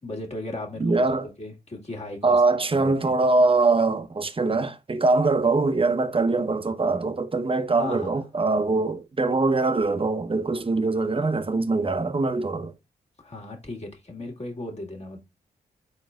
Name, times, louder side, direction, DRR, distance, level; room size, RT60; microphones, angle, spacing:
voice 1, 0.0-1.0 1.4-2.4 2.7-3.2 7.8-8.1 13.2-15.2, left 2 dB, 35° left, 1.8 m, -36 dB
voice 2, 0.8-1.3 2.2-12.7, right 3 dB, 30° right, 0.9 m, -23 dB
4.3 x 3.9 x 2.4 m
supercardioid pair, 50°, 18 cm